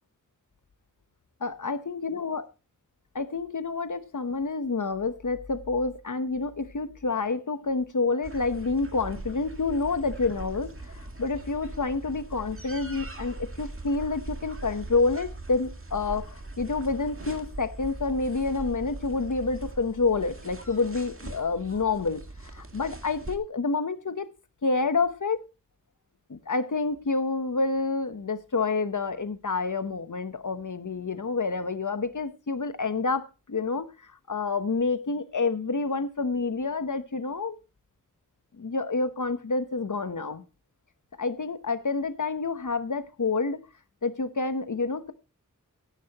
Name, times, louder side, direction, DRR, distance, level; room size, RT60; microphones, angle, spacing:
voice 1, 1.4-2.4 3.1-22.2 22.5-24.3 24.6-25.4 26.3-33.9 34.3-37.6 38.6-40.4 41.2-43.6 44.0-45.1, left 4 dB, 70° left, 1.1 m, -28 dB
sound 1, 8.2-23.4, right 2 dB, 40° right, 2.0 m, -41 dB
14.5 x 10.5 x 3.0 m
wide cardioid pair, 60°, 32 cm